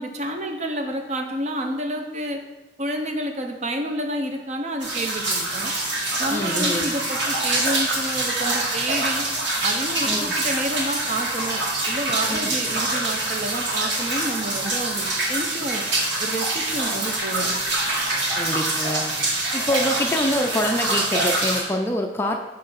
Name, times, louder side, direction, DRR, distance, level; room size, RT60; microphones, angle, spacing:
voice 1, 0.0-2.4 2.8-5.7 6.2-9.2 9.6-15.8 16.2-17.5, right 1 dB, 40° right, 3 dB, 0.7 m, -29 dB
sound 1, 4.8-21.6, right 2 dB, 80° right, 1.9 m, -25 dB
voice 2, 6.3-6.9 10.0-10.3 12.3-12.5 18.4-19.1 19.5-22.4, left 1 dB, 15° left, 3 dB, 0.4 m, -25 dB
6.6 x 3.2 x 5.6 m, 1.1 s
head